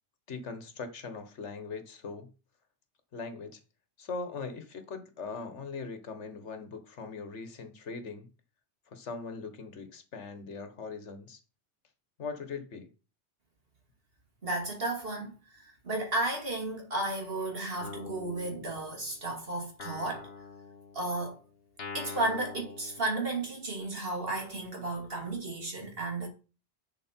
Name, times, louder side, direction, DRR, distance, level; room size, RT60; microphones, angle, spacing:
voice 1, 0.3-2.3 3.1-3.6 4.0-8.3 8.9-11.4 12.2-12.9, left 4 dB, 75° left, 1.6 m, -40 dB
voice 2, 14.4-15.6 15.8-20.3 20.9-21.4 21.9-26.3, right 2 dB, 55° right, 2.6 m, -33 dB
Guitar, 17.8-19.3 19.8-23.7, left 4 dB, 60° left, 1.5 m, -45 dB
10.5 x 5.0 x 4.4 m
omnidirectional pair, 1.2 m